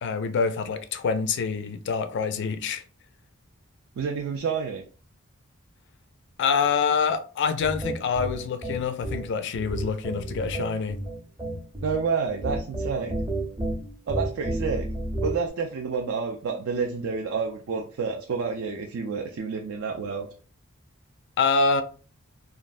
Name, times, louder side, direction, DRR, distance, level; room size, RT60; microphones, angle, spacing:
voice 1, 0.0-2.8 6.4-11.0 21.4-21.8, left 5 dB, 55° left, 0.4 m, -26 dB
voice 2, 4.0-4.8 11.8-13.2 14.1-14.9 15.2-20.3, right 5 dB, 65° right, 0.4 m, -29 dB
sound 1, 7.6-15.5, right 1 dB, 20° right, 0.7 m, -31 dB
3.1 x 2.3 x 2.5 m
head